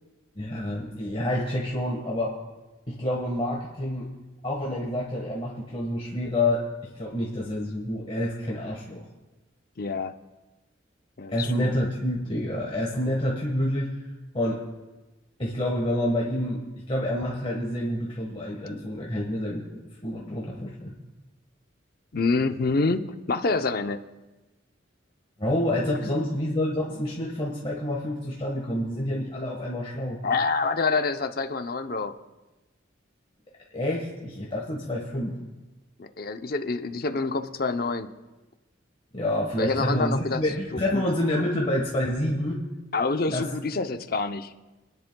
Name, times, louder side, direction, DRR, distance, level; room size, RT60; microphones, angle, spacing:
voice 1, 0.3-2.4 2.9-4.1 4.4-9.0 11.3-13.9 14.3-14.6 15.4-20.9 25.4-30.2 33.7-35.4 39.1-42.6 43.3-43.5, left 1 dB, 30° left, -3 dB, 1.4 m, -28 dB
voice 2, 9.8-10.1 11.2-11.7 22.1-24.1 26.1-26.2 30.2-32.1 36.0-38.1 39.6-40.4 40.7-41.0 42.9-44.5, left 3 dB, 50° left, 8 dB, 0.7 m, -27 dB
29.0 x 10.5 x 2.3 m, 1.1 s
head